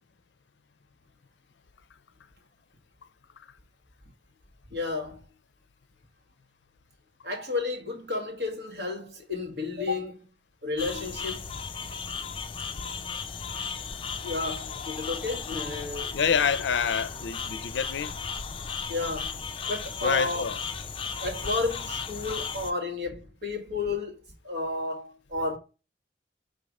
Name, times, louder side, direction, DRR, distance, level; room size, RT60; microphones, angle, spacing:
voice 1, 4.7-5.2 7.2-10.2 10.6-11.4 14.2-16.1 18.9-19.3 19.7-20.4 21.2-25.6, left 3 dB, 65° right, 2.0 m, -32 dB
sound 1, 10.8-22.7, left 5 dB, 30° left, 0.4 m, -35 dB
voice 2, 16.1-18.1 20.0-20.6, left 6 dB, 90° left, 0.4 m, -27 dB
4.8 x 3.7 x 5.2 m
head